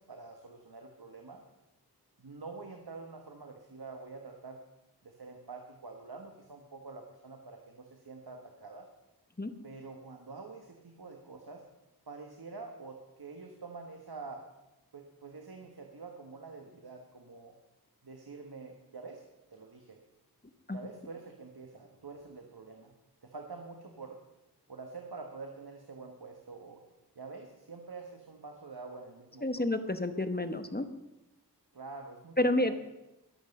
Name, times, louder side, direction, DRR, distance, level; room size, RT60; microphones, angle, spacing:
voice 1, 0.0-1.4 2.2-4.6 5.0-8.9 9.6-11.7 12.1-14.5 14.9-17.6 18.0-19.2 19.5-20.0 20.7-22.9 23.2-24.2 24.7-26.8 27.1-29.8 31.7-32.8, right 4 dB, 75° right, 3 dB, 1.5 m, -47 dB
voice 2, 29.4-30.9 32.4-32.8, left 1 dB, 25° left, 9 dB, 1.1 m, -29 dB
21.5 x 8.1 x 5.4 m, 0.96 s
wide cardioid pair, 40°, 38 cm